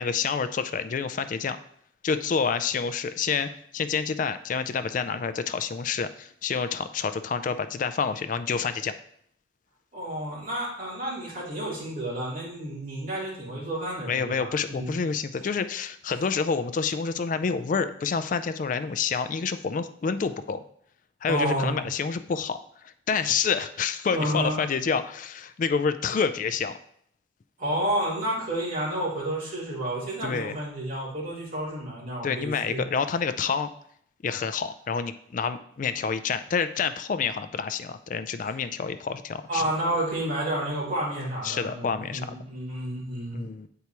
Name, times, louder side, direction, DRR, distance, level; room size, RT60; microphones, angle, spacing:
voice 1, 0.0-1.6 2.0-8.9 14.1-20.6 21.2-26.8 30.2-30.6 32.2-33.7 34.2-39.6 41.4-42.2 43.3-43.7, left 5 dB, 40° left, 11 dB, 0.3 m, -28 dB
voice 2, 9.9-15.0 21.3-21.9 24.1-24.6 27.6-32.8 38.4-38.5 39.5-43.4, right 1 dB, 45° right, -8 dB, 2.8 m, -30 dB
8.1 x 4.6 x 2.9 m, 0.65 s
head